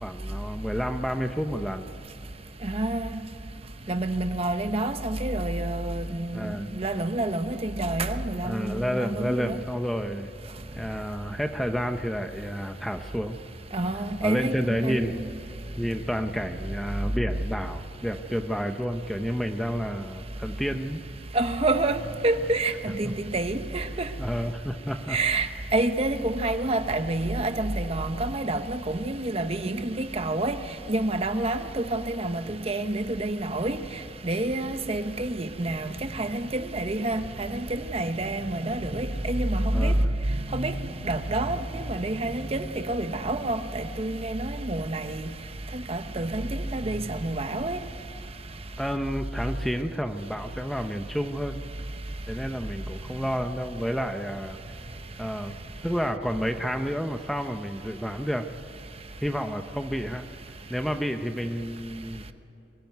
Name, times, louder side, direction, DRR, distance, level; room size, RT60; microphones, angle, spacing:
voice 1, 0.0-1.9 6.3-6.7 8.4-10.3 10.7-13.4 14.2-15.2 15.8-21.0 23.0-23.1 24.2-25.2 34.6-34.7 39.7-40.2 48.8-51.7 52.3-54.6 55.2-55.5 55.8-58.5 59.2-60.3 60.7-62.3, equal, ahead, 0.7 m, -30 dB
voice 2, 2.6-3.1 3.9-9.6 13.7-15.1 21.3-24.1 25.1-30.6 30.9-33.8 34.2-40.0 40.5-45.3 45.7-47.8, right 2 dB, 35° right, 1.0 m, -28 dB
23.5 x 15.5 x 9.3 m
head